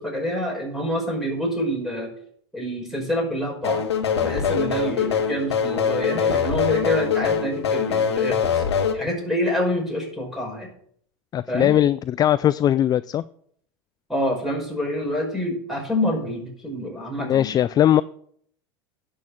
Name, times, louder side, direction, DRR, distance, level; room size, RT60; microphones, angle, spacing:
voice 1, 0.0-2.1 2.5-3.8 4.2-8.6 8.9-10.7 11.5-11.7 14.1-17.6, equal, ahead, 5.6 m, -27 dB
sound 1, 3.6-8.9, left 7 dB, 90° left, 1.5 m, -23 dB
voice 2, 11.3-13.2 17.2-18.0, left 11 dB, 30° left, 0.4 m, -19 dB
10.5 x 6.5 x 7.3 m
hypercardioid pair, 100°, 14 cm